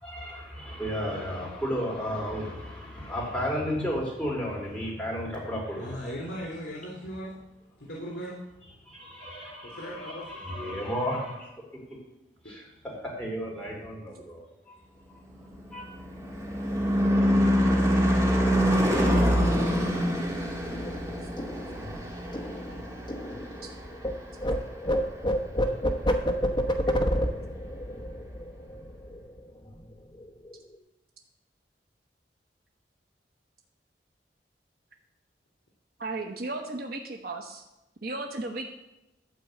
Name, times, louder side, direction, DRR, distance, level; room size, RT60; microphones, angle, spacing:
voice 1, 0.0-6.1 8.9-11.5 12.5-14.8 15.7-15.9, equal, 5° left, -4 dB, 3.5 m, -33 dB
voice 2, 5.7-7.4 7.8-8.4 9.6-10.3 12.4-12.6, equal, 80° left, -4 dB, 2.7 m, -38 dB
Car passing by / Truck / Engine, 15.4-24.1, equal, 20° right, 1.8 m, -25 dB
sound 1, 20.7-24.1 24.4-29.4 29.7-29.9 30.2-30.7, equal, 25° left, 1.0 m, -29 dB
voice 3, 36.0-37.6 38.0-38.7, right 2 dB, 60° right, 2 dB, 1.0 m, -35 dB
12.0 x 4.6 x 7.8 m, 0.93 s
head